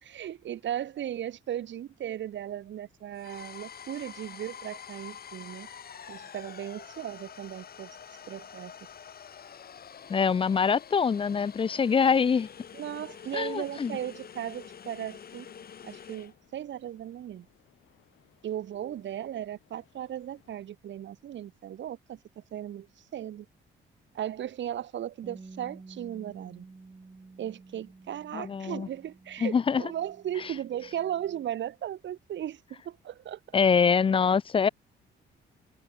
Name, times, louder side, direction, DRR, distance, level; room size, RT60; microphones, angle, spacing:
voice 1, 0.0-5.7 6.1-7.9 8.3-8.7 12.7-15.5 15.8-17.5 18.4-22.9 23.1-23.5 24.1-26.7 27.4-33.6, right 11 dB, 70° right, 2.6 m, -37 dB
sound 1, 3.1-16.3, left 8 dB, 50° left, 2.4 m, -47 dB
sound 2, 9.7-20.6, left 13 dB, 80° left, 7.5 m, -67 dB
voice 2, 10.1-12.5 13.3-13.9 28.3-28.9 29.4-29.8 33.5-34.7, left 6 dB, 25° left, 0.4 m, -24 dB
Bass guitar, 25.2-31.5, right 3 dB, 20° right, 2.4 m, -51 dB
cardioid pair, 90°, 20 cm